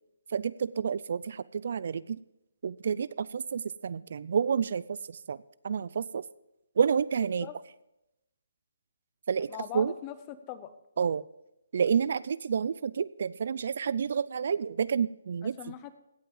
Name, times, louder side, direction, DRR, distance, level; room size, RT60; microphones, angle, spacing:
voice 1, 0.3-2.2 2.6-5.4 5.6-6.2 6.8-7.5 9.3-9.9 11.0-11.2 11.7-15.5, right 6 dB, 55° right, 19 dB, 0.3 m, -29 dB
voice 2, 7.2-7.5 9.5-10.7 15.4-15.9, left 12 dB, 20° left, 12 dB, 0.7 m, -41 dB
16.5 x 5.8 x 5.5 m, 0.87 s
hypercardioid pair, 170°, 0 cm